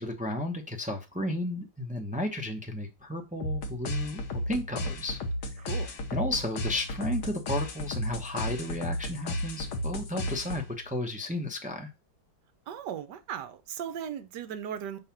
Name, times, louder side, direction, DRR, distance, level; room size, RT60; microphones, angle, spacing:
voice 1, 0.0-5.2 5.5-5.7 6.1-11.9, left 1 dB, 10° right, 0.4 m, -33 dB
sound 1, 3.4-10.9, left 1 dB, 65° left, 1.6 m, -34 dB
voice 2, 5.6-6.0 12.7-15.0, right 9 dB, 70° right, 1.3 m, -37 dB
5.2 x 4.0 x 5.8 m
omnidirectional pair, 2.0 m